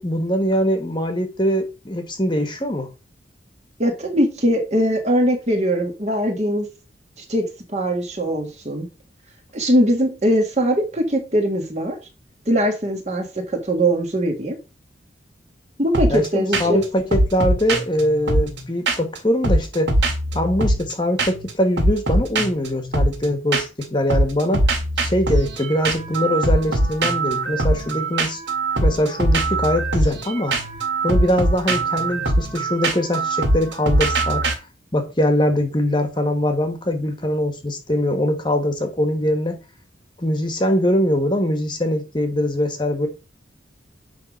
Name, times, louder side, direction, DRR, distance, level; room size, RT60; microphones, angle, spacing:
voice 1, 0.0-2.9 16.1-19.9 20.3-24.7 25.0-28.4 28.8-30.6 31.0-34.6 34.9-39.6 40.2-43.1, left 1 dB, 25° left, 1.3 m, -22 dB
voice 2, 3.8-6.7 7.2-7.5 7.7-8.9 9.5-12.0 12.5-14.6 15.8-16.8, equal, 35° right, 1.8 m, -21 dB
sound 1, 15.9-16.3 16.5-16.8 17.1-19.2 19.4-20.9 21.2-21.5 21.8-23.8 24.1-34.5, right 2 dB, 70° right, 2.1 m, -22 dB
10.0 x 3.6 x 5.2 m
head